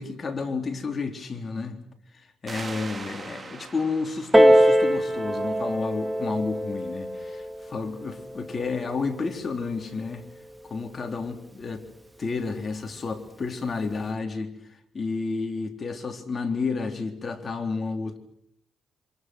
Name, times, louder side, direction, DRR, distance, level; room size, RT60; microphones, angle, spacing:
voice 1, 0.0-1.8 2.1-10.2 10.7-11.9 12.2-14.6 14.9-18.2, left 4 dB, 35° left, 3.9 m, -31 dB
sound 1, 2.5-5.8, right 4 dB, 35° right, 2.2 m, -42 dB
Piano, 4.3-9.5 10.4-10.5, equal, 10° right, 3.2 m, -23 dB
27.5 x 26.5 x 6.4 m
cardioid pair, 90°, 0 cm